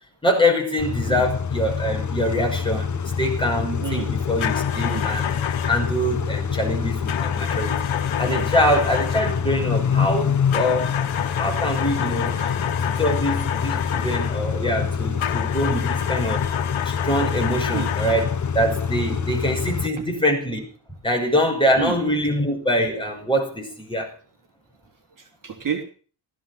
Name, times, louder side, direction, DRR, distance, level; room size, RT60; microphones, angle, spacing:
voice 1, 0.2-2.9 3.2-5.4 5.7-7.7 8.2-11.0 11.4-12.4 13.0-16.4 16.8-18.3 18.5-20.7 21.0-24.1, equal, 10° left, 1 dB, 6.0 m, -24 dB
Car / Idling / Accelerating revving vroom, 0.8-19.9, left 6 dB, 40° left, 1.1 m, -26 dB
voice 2, 3.8-4.1 4.8-5.1 8.3-8.5 12.4-12.5 17.7-17.9 21.8-22.0 25.2-25.8, right 7 dB, 40° right, 2 dB, 3.1 m, -30 dB
sound 1, 4.4-6.0 7.1-9.5 10.5-14.5 15.2-18.4, left 10 dB, 90° left, 1.5 m, -29 dB
17.0 x 14.0 x 5.9 m, 0.41 s
wide cardioid pair, 175°, 46 cm